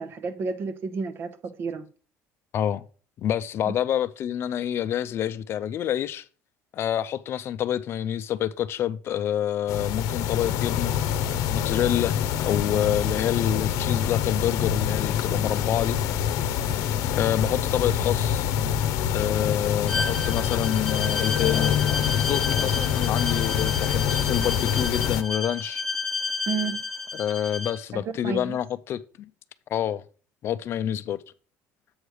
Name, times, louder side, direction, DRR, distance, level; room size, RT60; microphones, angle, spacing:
voice 1, 0.0-1.8 3.7-3.8 26.5-26.9 27.9-28.6, right 5 dB, 45° right, 0.8 m, -31 dB
voice 2, 3.2-6.2 6.7-10.9 11.5-16.0 17.1-18.4 19.1-21.8 22.2-25.8 27.2-29.3 29.7-30.0 30.4-31.2, left 10 dB, 45° left, 0.4 m, -27 dB
sound 1, 9.7-25.2, left 9 dB, 70° left, 0.8 m, -26 dB
Bowed string instrument, 19.9-27.8, left 4 dB, 5° left, 1.1 m, -31 dB
7.9 x 3.3 x 6.3 m
cardioid pair, 130°, 6 cm